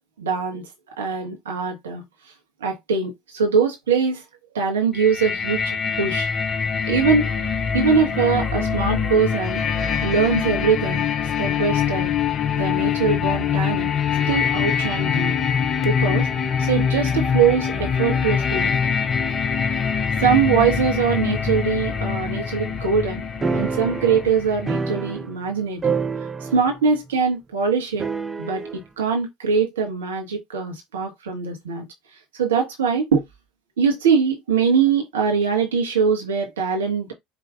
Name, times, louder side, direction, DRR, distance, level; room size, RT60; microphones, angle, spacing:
voice 1, 0.2-0.7 1.0-2.0 2.6-4.2 4.5-6.3 6.9-7.3 7.7-11.1 11.4-12.1 12.5-13.9 14.3-15.4 15.8-16.3 16.6-18.7 20.2-23.2 23.5-25.9 26.5-28.1 28.4-31.9 32.3-33.2 33.8-37.1, right 6 dB, 75° right, 1.5 m, -22 dB
sound 1, 4.9-24.7, left 7 dB, 35° left, 0.7 m, -24 dB
sound 2, 23.4-25.5 25.8-26.8 27.1-27.2 28.0-28.8, right 5 dB, 20° right, 0.6 m, -27 dB
5.1 x 3.0 x 2.4 m
figure-of-eight pair, 70°, 0 cm